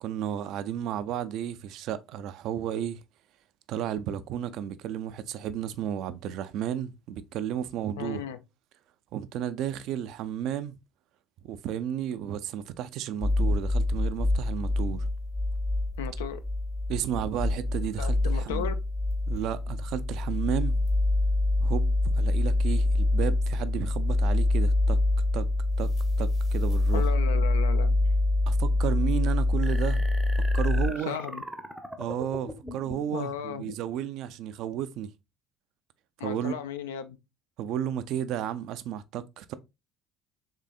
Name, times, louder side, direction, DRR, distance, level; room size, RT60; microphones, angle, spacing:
voice 1, 0.0-3.0 3.7-8.2 9.1-10.8 11.4-15.0 16.9-18.7 19.3-20.7 21.6-21.9 22.1-25.0 25.3-25.5 25.8-25.9 26.2-27.0 28.5-30.1 30.5-31.2 32.0-35.1 36.2-36.5 37.6-39.5, right 10 dB, 60° right, 0.3 m, -33 dB
voice 2, 8.0-8.4 16.0-16.4 18.0-18.7 26.9-28.0 30.8-31.4 33.1-33.7 36.2-37.2, left 9 dB, 75° left, 0.3 m, -35 dB
sound 1, 13.2-30.9, left 2 dB, 55° left, 1.5 m, -25 dB
sound 2, 29.6-33.2, equal, 5° right, 0.6 m, -40 dB
3.7 x 3.2 x 2.3 m
figure-of-eight pair, 55°, 0 cm